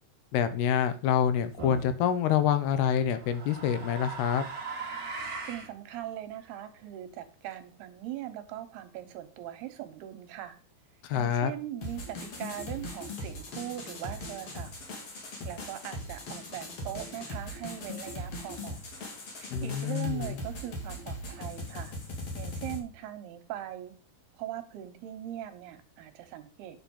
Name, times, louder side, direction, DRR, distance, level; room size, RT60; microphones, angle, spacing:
voice 1, 0.3-4.5 11.0-11.5 19.5-20.4, left 9 dB, 85° left, 12 dB, 2.9 m, -27 dB
sound 1, 1.6-2.0 3.0-5.7, right 4 dB, 30° right, 1.9 m, -39 dB
voice 2, 5.2-10.6 11.1-14.7 15.3-18.8 19.3-21.9 22.4-23.9 24.4-26.8, right 12 dB, 80° right, 8 dB, 3.1 m, -40 dB
sound 2, 11.8-22.8, left 1 dB, 45° left, 2.7 m, -40 dB
9.6 x 5.8 x 5.4 m, 0.39 s
omnidirectional pair, 4.5 m